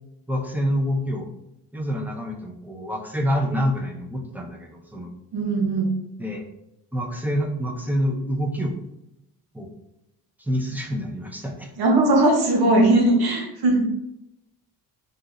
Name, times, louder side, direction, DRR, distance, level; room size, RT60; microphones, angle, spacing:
voice 1, 0.3-1.3 1.7-5.1 6.2-6.5 6.9-8.7 9.5-9.7 10.4-11.7, equal, 5° right, 1 dB, 0.8 m, -27 dB
voice 2, 5.3-6.0 11.8-13.9, right 2 dB, 75° right, 0 dB, 1.4 m, -19 dB
4.0 x 2.8 x 3.7 m, 0.83 s
cardioid pair, 100°, 38 cm